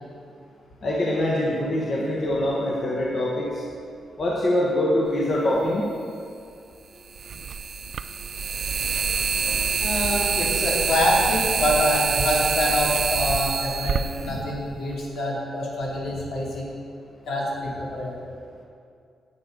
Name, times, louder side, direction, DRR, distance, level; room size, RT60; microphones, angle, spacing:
voice 1, 0.8-3.6 4.2-5.9, left 1 dB, 35° left, -4 dB, 1.2 m, -24 dB
sound 1, 5.7-5.8 7.1-15.0, right 6 dB, 45° right, 0.3 m, -26 dB
voice 2, 9.8-16.7 17.3-18.1, left 1 dB, 70° left, -5 dB, 3.0 m, -25 dB
9.5 x 8.5 x 5.3 m, 2.4 s
wide cardioid pair, 165°, 0 cm